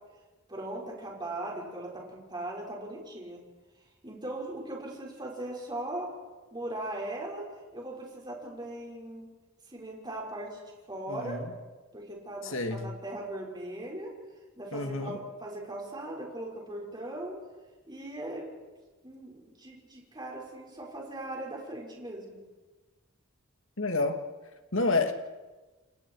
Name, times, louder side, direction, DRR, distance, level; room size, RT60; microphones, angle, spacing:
voice 1, 0.5-3.4 4.0-6.1 6.5-7.5 7.7-9.3 9.7-10.6 10.9-11.4 11.9-14.1 14.6-17.4 17.9-18.5 19.0-22.4, right 1 dB, 20° right, -2 dB, 6.0 m, -39 dB
voice 2, 11.1-11.5 12.4-12.9 14.7-15.2 23.8-24.2 24.7-25.1, left 3 dB, 70° left, 6 dB, 2.3 m, -29 dB
29.5 x 28.0 x 4.9 m, 1.2 s
head